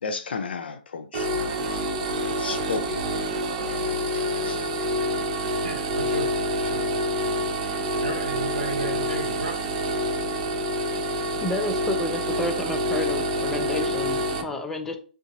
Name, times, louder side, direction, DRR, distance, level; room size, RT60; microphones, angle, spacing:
voice 1, 0.0-1.3 1.6-1.8 2.2-3.3 3.7-4.6, left 5 dB, 70° left, 0.5 m, -34 dB
sound 1, 1.1-14.4, equal, 45° right, 0.6 m, -27 dB
voice 2, 5.6-6.9 8.0-9.7, right 2 dB, 85° right, 0.7 m, -33 dB
voice 3, 11.4-15.0, left 2 dB, 5° left, 0.4 m, -30 dB
3.7 x 2.5 x 2.6 m
figure-of-eight pair, 125°, 6 cm